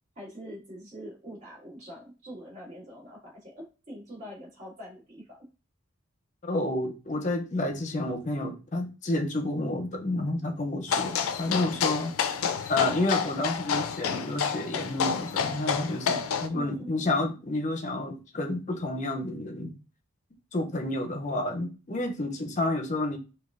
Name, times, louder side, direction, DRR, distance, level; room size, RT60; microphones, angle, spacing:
voice 1, 0.2-5.5 16.5-16.9, equal, 30° right, 1.8 m, -44 dB
voice 2, 6.4-12.1 12.7-19.7 20.5-23.2, left 2 dB, 35° left, 0.5 m, -30 dB
sound 1, 10.9-16.5, left 7 dB, 85° left, 0.4 m, -29 dB
5.2 x 2.2 x 2.4 m
head